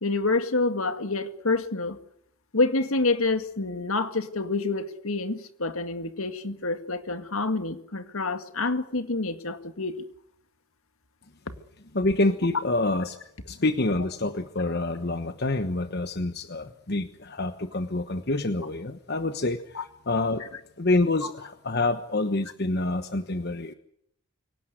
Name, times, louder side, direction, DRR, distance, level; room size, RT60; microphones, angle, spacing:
voice 1, 0.0-2.0 2.5-10.0 19.7-19.8 21.2-21.3, left 3 dB, 75° left, 9 dB, 2.1 m, -27 dB
voice 2, 11.9-13.2 13.5-20.5 20.8-23.7, left 2 dB, 50° left, 9 dB, 1.2 m, -27 dB
25.5 x 18.0 x 9.5 m, 0.73 s
head